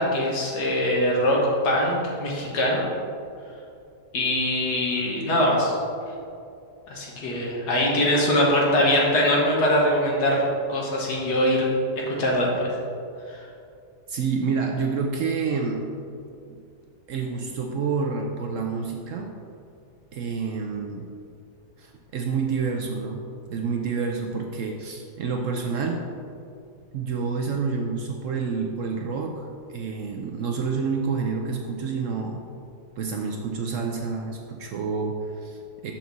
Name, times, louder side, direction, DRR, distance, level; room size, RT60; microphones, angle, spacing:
voice 1, 0.0-1.4 1.6-2.8 4.1-5.7 6.9-10.4 10.7-11.7 12.0-12.7 13.3-13.4, left 1 dB, 80° left, -3 dB, 1.8 m, -22 dB
voice 2, 14.1-15.9 16.5-16.6 17.1-19.3 20.1-21.1 21.8-26.0 26.9-32.4 33.0-35.9, right 5 dB, 70° right, 2 dB, 0.8 m, -28 dB
6.1 x 5.8 x 4.0 m, 2.5 s
omnidirectional pair, 1.7 m